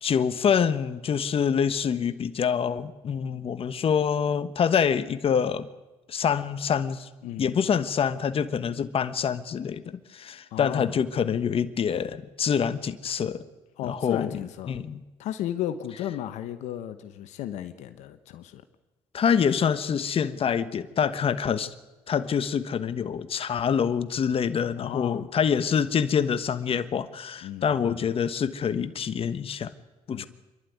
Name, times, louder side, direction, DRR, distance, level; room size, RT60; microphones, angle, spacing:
voice 1, 0.0-5.7 6.1-7.1 7.4-13.4 13.9-14.3 14.7-15.0 19.1-21.7 22.1-29.7 30.1-30.3, left 7 dB, 55° left, 12 dB, 1.3 m, -26 dB
voice 2, 7.2-7.5 10.5-11.0 13.8-14.8 15.2-18.6 24.8-25.3 27.4-28.0 30.1-30.3, left 11 dB, 85° left, 10 dB, 1.1 m, -34 dB
27.0 x 11.5 x 9.4 m, 1.1 s
supercardioid pair, 70°, 12 cm